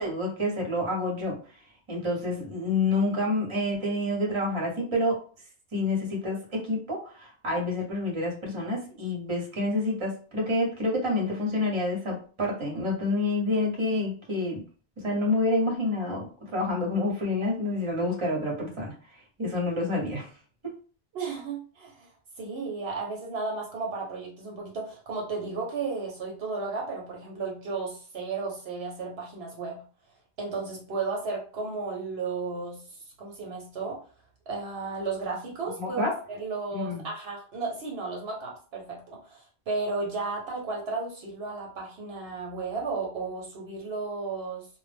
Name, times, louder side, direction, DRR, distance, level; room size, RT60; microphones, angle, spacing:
voice 1, 0.0-1.4 1.9-5.2 5.7-14.6 15.0-18.9 19.4-20.3 20.6-20.7 35.8-36.1 36.7-37.0, left 2 dB, 30° right, -2 dB, 0.8 m, -28 dB
voice 2, 21.1-22.1 22.4-29.8 30.4-34.0 34.5-44.7, right 4 dB, 70° right, -1 dB, 0.9 m, -34 dB
2.2 x 2.0 x 3.2 m, 0.40 s
omnidirectional pair, 1.1 m